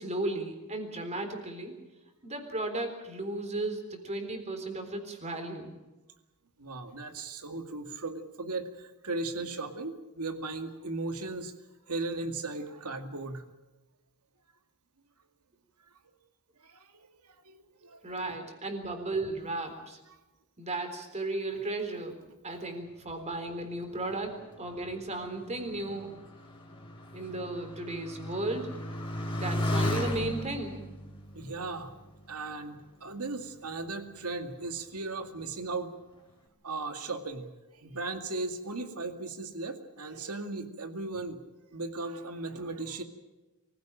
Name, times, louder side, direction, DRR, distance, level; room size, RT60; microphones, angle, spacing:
voice 1, 0.0-1.7 2.2-5.7 18.0-20.0 20.6-22.2 22.4-26.1 27.1-28.7 29.4-30.8, right 2 dB, 30° right, 6 dB, 3.8 m, -35 dB
voice 2, 6.6-11.5 11.9-13.4 16.1-16.2 16.6-18.0 24.0-24.2 31.3-31.9 32.3-35.9 36.6-37.5 37.8-41.4 41.7-43.0, right 3 dB, 85° right, 7 dB, 2.2 m, -37 dB
Motorcycle, 23.9-32.9 33.6-34.2, left 1 dB, 25° left, 3.8 m, -36 dB
24.5 x 15.5 x 8.9 m, 1.1 s
head